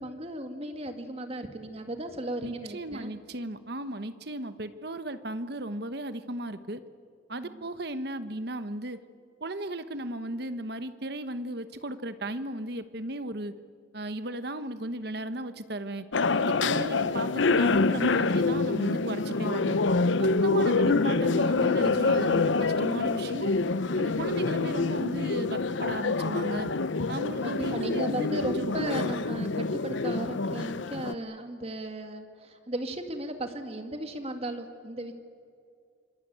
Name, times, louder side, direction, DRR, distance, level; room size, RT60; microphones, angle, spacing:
voice 1, 0.0-3.1 7.3-7.7 20.3-20.5 27.4-35.1, right 1 dB, 30° right, 6 dB, 2.1 m, -36 dB
voice 2, 2.4-6.8 7.3-9.0 9.4-13.5 13.9-16.1 16.4-19.8 20.2-23.6 24.0-26.7 27.1-28.7, right 1 dB, 55° right, 11 dB, 1.2 m, -35 dB
sound 1, 16.1-31.1, left 3 dB, 80° left, 0.7 m, -26 dB
26.0 x 21.5 x 9.3 m, 2.4 s
head